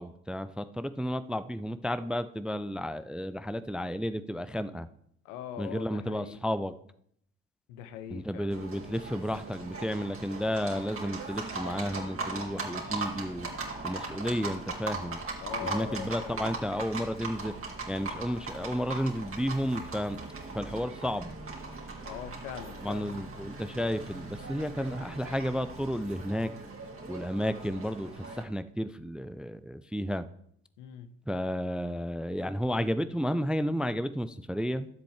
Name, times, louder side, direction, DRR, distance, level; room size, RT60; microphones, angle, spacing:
voice 1, 0.0-4.9 5.6-6.7 8.1-13.5 13.8-15.2 15.6-17.5 17.9-20.2 20.5-21.4 22.8-26.5 27.1-30.3 31.3-34.9, equal, ahead, 13 dB, 0.4 m, -32 dB
voice 2, 5.2-6.4 7.7-8.6 15.4-16.5 22.0-23.3 30.8-31.1, left 10 dB, 70° left, 11 dB, 0.9 m, -42 dB
Livestock farm animals working animals, 8.5-28.4, right 3 dB, 35° right, 2.6 m, -39 dB
13.0 x 7.7 x 3.4 m, 0.69 s
figure-of-eight pair, 45°, 39 cm